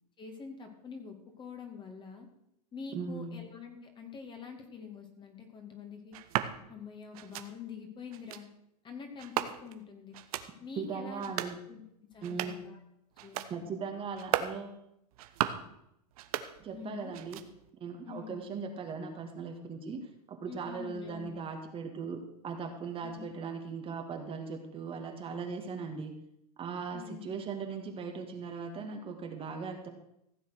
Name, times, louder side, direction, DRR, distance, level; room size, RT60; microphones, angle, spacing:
voice 1, 0.2-2.3 2.7-6.2 6.7-8.5 8.8-10.2 10.6-11.3 11.7-11.8 12.1-12.8 13.2-13.7 16.7-17.2 18.1-18.4 20.5-21.4 23.0-23.4 26.9-27.3, left 6 dB, 25° left, 5 dB, 2.4 m, -46 dB
voice 2, 2.9-3.4 10.8-11.6 12.2-12.6 13.5-14.8 16.6-17.4 17.7-26.1 26.6-29.9, right 5 dB, 25° right, 3 dB, 2.0 m, -39 dB
sound 1, 6.1-6.5 7.1-7.5 8.1-8.4 9.2-9.8 10.1-10.5 11.1-11.6 12.1-12.7 13.1-13.5 14.1-14.6 15.1-15.7 16.1-16.8 17.1-17.7, right 12 dB, 60° right, 1.1 m, -36 dB
15.5 x 7.1 x 6.4 m, 0.78 s
hypercardioid pair, 115°, 21 cm